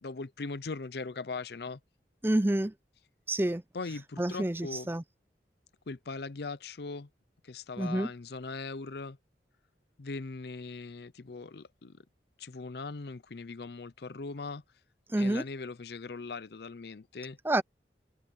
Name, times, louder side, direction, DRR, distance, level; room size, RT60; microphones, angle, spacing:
voice 1, 0.0-1.8 3.7-4.9 5.9-7.1 7.4-9.2 10.0-12.0 12.4-14.6 15.2-17.4, left 3 dB, 60° left, 0.6 m, -40 dB
voice 2, 2.2-2.7 3.3-3.6 4.2-5.0 7.8-8.1 15.1-15.4 17.4-17.6, right 1 dB, 10° right, 0.5 m, -28 dB
head